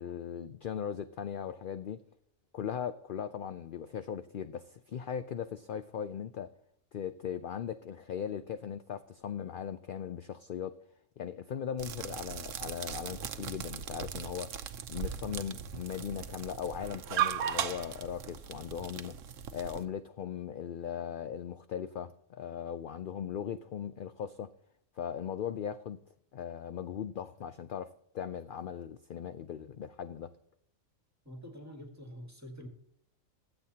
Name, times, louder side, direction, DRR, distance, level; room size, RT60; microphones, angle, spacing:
voice 1, 0.0-2.0 2.5-6.5 6.9-10.7 11.2-14.5 14.9-19.2 19.5-24.5 25.0-26.0 26.3-30.3, left 8 dB, 60° left, 0.5 m, -38 dB
sound 1, 11.8-19.8, right 9 dB, 75° right, 1.1 m, -37 dB
voice 2, 31.3-32.7, equal, 10° right, 1.8 m, -46 dB
22.5 x 8.0 x 2.8 m
omnidirectional pair, 1.4 m